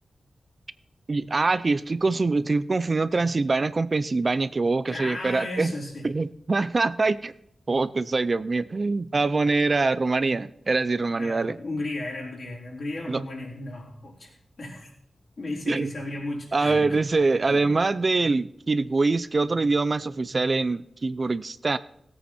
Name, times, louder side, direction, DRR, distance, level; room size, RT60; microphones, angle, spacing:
voice 1, 1.1-5.7 6.0-7.3 7.7-11.6 13.1-13.2 15.7-15.9 16.5-21.8, right 3 dB, 40° right, 15 dB, 0.4 m, -24 dB
voice 2, 4.9-6.1 11.2-14.9 15.4-17.7, left 2 dB, 55° left, -3 dB, 4.4 m, -35 dB
17.0 x 8.5 x 4.3 m, 0.76 s
wide cardioid pair, 100°, 0 cm